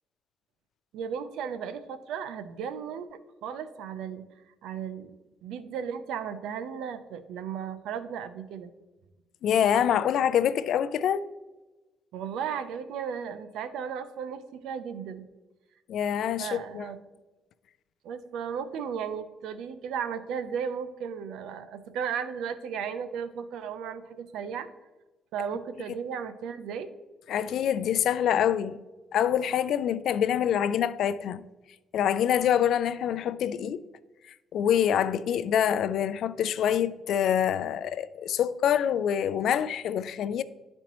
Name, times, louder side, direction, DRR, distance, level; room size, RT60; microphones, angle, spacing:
voice 1, 0.9-4.2 4.6-5.2 5.4-8.7 12.1-15.2 16.4-17.0 18.0-24.7 25.3-26.9, right 7 dB, 85° right, 0.6 m, -35 dB
voice 2, 9.4-11.3 15.9-16.9 27.3-28.8 29.1-31.4 31.9-33.8 34.5-40.4, left 9 dB, 75° left, 0.4 m, -25 dB
12.0 x 4.3 x 3.0 m
cardioid pair, 90°, 0 cm